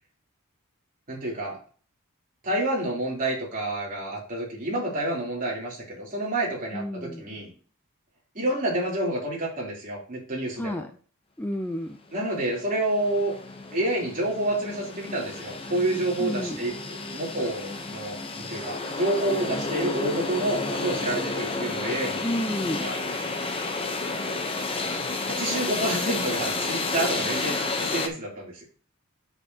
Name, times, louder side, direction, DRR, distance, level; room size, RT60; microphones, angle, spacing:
voice 1, 1.1-1.6 2.4-7.5 8.3-10.8 12.1-13.3 13.7-22.3 22.8-23.0 25.3-28.6, right 1 dB, 40° right, -3 dB, 3.3 m, -29 dB
voice 2, 6.7-7.2 10.6-10.9 11.4-12.0 16.2-16.6 22.2-22.9, equal, 10° left, 6 dB, 0.4 m, -30 dB
sound 1, 12.1-12.2 12.5-28.1, left 3 dB, 25° left, 0.8 m, -31 dB
8.3 x 6.7 x 2.8 m, 0.40 s
head